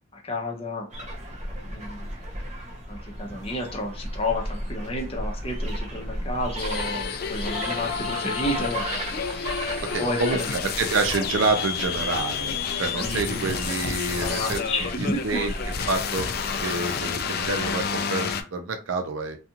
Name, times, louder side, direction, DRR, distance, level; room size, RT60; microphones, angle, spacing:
voice 1, 0.1-0.9 1.6-2.1 2.9-8.8 9.1-9.2 10.0-10.5 13.0-13.5 14.2-15.2 16.6-16.8, left 1 dB, 30° left, 0 dB, 0.7 m, -31 dB
sound 1, 0.9-17.9, right 1 dB, 35° right, 0.6 m, -35 dB
sound 2, 6.6-18.4, left 6 dB, 50° left, 0.3 m, -30 dB
voice 2, 9.9-14.6 15.0-15.5 15.9-16.3 16.6-19.4, right 3 dB, 85° right, 6 dB, 0.5 m, -28 dB
2.5 x 2.3 x 2.8 m, 0.32 s
head